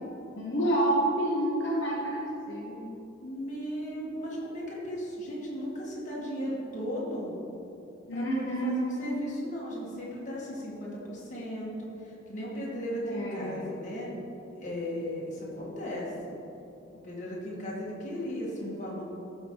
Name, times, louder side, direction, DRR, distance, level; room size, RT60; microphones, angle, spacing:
voice 1, 0.4-2.9 8.1-9.3 13.0-13.7, right 1 dB, 65° left, -5 dB, 1.2 m, -29 dB
voice 2, 3.2-7.4 8.1-14.1 14.5-16.4 17.0-19.0, equal, 40° left, -6 dB, 2.0 m, -36 dB
13.0 x 5.4 x 4.0 m, 2.8 s
head